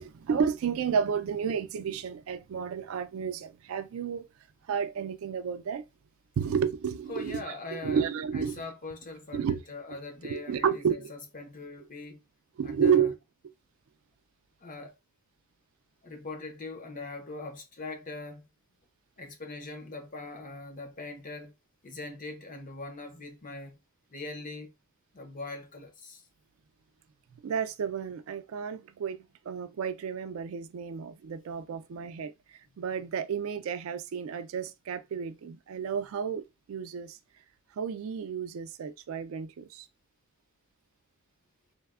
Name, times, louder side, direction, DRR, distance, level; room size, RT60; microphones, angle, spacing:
voice 1, 0.0-4.2 4.7-5.8 6.4-7.5 7.8-8.6 9.3-9.6 10.3-11.1 12.6-13.2 27.4-32.3 32.8-37.2 37.8-39.9, right 7 dB, 70° right, 0.3 m, -31 dB
voice 2, 7.1-8.1 8.3-12.2 12.6-13.1 14.6-14.9 16.0-18.4 19.2-21.5 21.8-23.8 24.1-24.7 25.1-26.2, left 3 dB, 40° left, 0.6 m, -41 dB
3.2 x 2.0 x 2.3 m
head